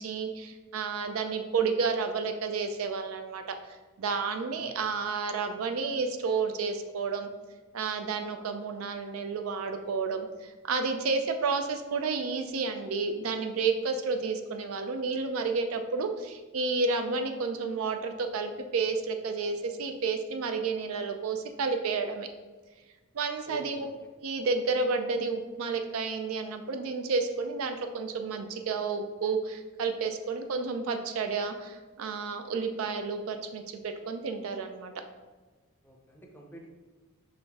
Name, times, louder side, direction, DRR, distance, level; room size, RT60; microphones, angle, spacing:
voice 1, 0.0-3.5 4.0-7.3 7.7-22.3 23.1-23.9 24.2-34.9, right 4 dB, 75° right, 6 dB, 0.4 m, -31 dB
voice 2, 4.6-4.9 23.5-23.9 35.8-36.7, right 1 dB, 10° left, 0 dB, 0.6 m, -47 dB
5.8 x 2.5 x 3.5 m, 1.3 s
head